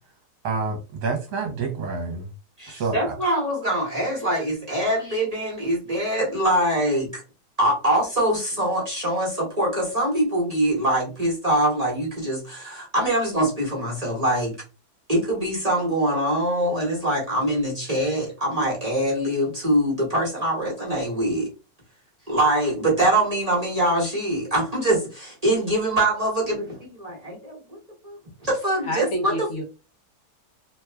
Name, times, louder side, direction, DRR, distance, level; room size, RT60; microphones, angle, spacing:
voice 1, 0.4-2.3 2.7-3.2, right 4 dB, 70° right, 1.3 m, -28 dB
voice 2, 2.6-7.2 7.6-14.5 15.1-21.5 22.3-27.8 28.0-29.5, right 1 dB, 25° right, 1.0 m, -23 dB
voice 3, 28.8-29.6, equal, 55° left, 0.9 m, -28 dB
2.9 x 2.3 x 3.3 m
omnidirectional pair, 1.9 m